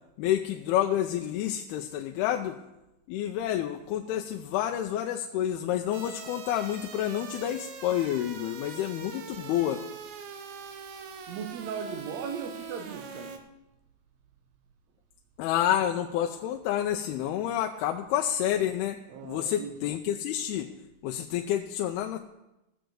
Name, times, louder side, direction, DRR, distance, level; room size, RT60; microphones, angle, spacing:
voice 1, 0.2-2.6 3.1-9.8 15.4-20.8 21.0-22.2, left 11 dB, 85° left, 4 dB, 2.6 m, -29 dB
sound 1, 5.9-13.4, right 6 dB, 65° right, 1.9 m, -43 dB
voice 2, 11.3-13.3 19.1-19.7, right 6 dB, 90° right, 5 dB, 1.5 m, -37 dB
14.5 x 6.8 x 7.7 m, 0.96 s
omnidirectional pair, 4.5 m